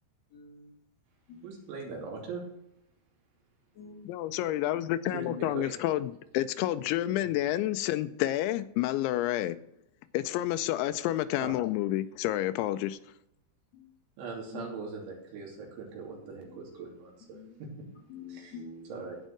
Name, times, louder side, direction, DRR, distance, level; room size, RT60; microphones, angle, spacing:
voice 1, 0.3-0.7 1.3-1.4 3.7-4.5 5.3-5.5 7.1-7.2 13.7-13.9 14.5-14.8 17.3-19.0, left 5 dB, 50° left, 2.3 m, -47 dB
voice 2, 1.4-2.4 5.1-5.7 11.4-11.6 14.2-17.9 18.3-18.6 18.9-19.2, right 4 dB, 75° right, 5.2 m, -41 dB
voice 3, 4.1-9.6 10.1-13.0, left 14 dB, 85° left, 2.8 m, -29 dB
15.5 x 5.4 x 6.5 m
omnidirectional pair, 5.4 m